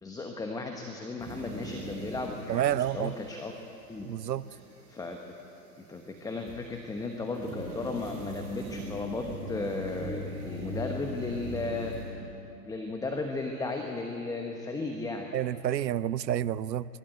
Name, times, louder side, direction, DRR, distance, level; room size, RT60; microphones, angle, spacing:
voice 1, 0.0-3.5 3.9-4.1 4.5-4.6 4.9-5.2 5.8-12.3 12.6-15.3, left 3 dB, 5° left, 3 dB, 1.0 m, -35 dB
sound 1, 1.2-6.9 7.3-12.0, equal, 30° right, 6.6 m, -41 dB
voice 2, 2.5-3.1 4.0-4.4 15.3-16.8, right 11 dB, 85° right, 19 dB, 0.7 m, -29 dB
24.0 x 12.5 x 9.1 m, 2.8 s
hypercardioid pair, 120°, 49 cm